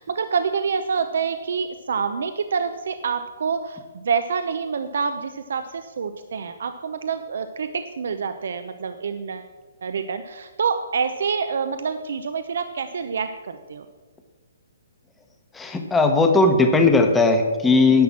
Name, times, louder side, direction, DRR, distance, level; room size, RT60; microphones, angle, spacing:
voice 1, 0.0-9.5 9.8-13.9, right 5 dB, 70° right, 9 dB, 0.6 m, -27 dB
voice 2, 15.5-18.0, left 3 dB, 10° left, 5 dB, 1.0 m, -17 dB
10.5 x 5.9 x 7.3 m, 1.3 s
hypercardioid pair, 155°, 0 cm